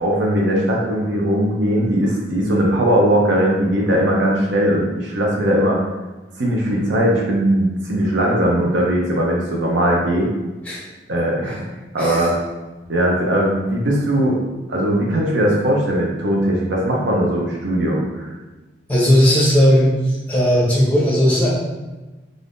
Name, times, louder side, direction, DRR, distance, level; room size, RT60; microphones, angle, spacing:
voice 1, 0.0-5.8 6.4-10.3 11.1-11.7 11.9-12.3 12.9-14.4 14.7-18.3, right 1 dB, 90° right, -2 dB, 0.6 m, -19 dB
voice 2, 18.9-19.9 20.3-21.5, equal, 10° left, -5 dB, 0.7 m, -16 dB
3.4 x 2.5 x 2.5 m, 1.2 s
head